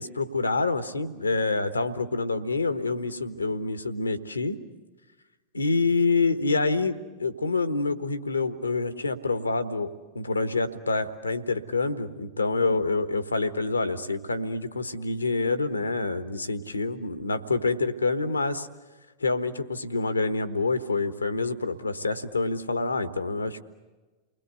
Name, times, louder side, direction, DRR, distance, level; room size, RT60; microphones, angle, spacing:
voice 1, 0.0-4.6 5.5-18.7 19.2-23.6, left 3 dB, 80° left, 12 dB, 1.3 m, -27 dB
29.5 x 21.0 x 8.1 m, 1.3 s
figure-of-eight pair, 90°, 0 cm